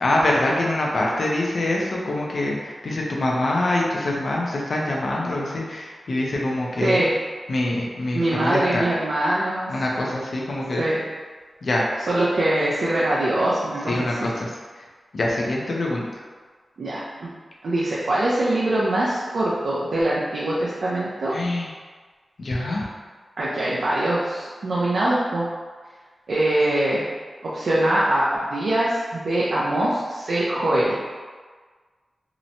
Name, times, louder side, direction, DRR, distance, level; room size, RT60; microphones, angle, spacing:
voice 1, 0.0-7.0 7.5-8.8 9.7-10.8 11.6-11.9 13.9-14.5 14.8-14.9 15.1-16.2 21.3-21.7 22.4-22.9, left 1 dB, 65° left, -2 dB, 0.4 m, -24 dB
voice 2, 8.1-9.7 10.8-11.0 12.1-13.9 14.2-14.3 16.8-17.3 17.6-21.3 23.4-25.5 26.3-27.0 27.4-31.0, right 1 dB, 75° right, -7 dB, 0.4 m, -23 dB
2.9 x 2.1 x 2.6 m, 1.5 s
wide cardioid pair, 100°, 0 cm